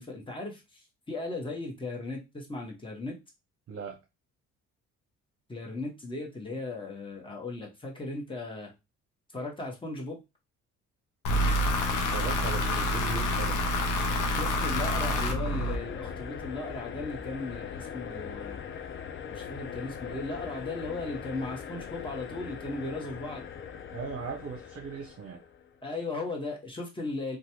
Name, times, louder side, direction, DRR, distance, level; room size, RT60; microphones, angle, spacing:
voice 1, 0.0-3.1 5.5-8.7 9.3-10.2 14.3-18.6 19.3-23.4 25.8-27.4, left 2 dB, 15° left, -1 dB, 1.1 m, -37 dB
voice 2, 3.7-4.0 12.0-13.6 23.9-25.4, right 5 dB, 55° right, 1 dB, 0.7 m, -38 dB
sound 1, 11.2-16.2, left 1 dB, 80° left, 0.7 m, -28 dB
sound 2, 15.5-25.8, left 7 dB, 40° left, 0.4 m, -41 dB
3.1 x 2.3 x 2.8 m, 0.24 s
cardioid pair, 90°, 30 cm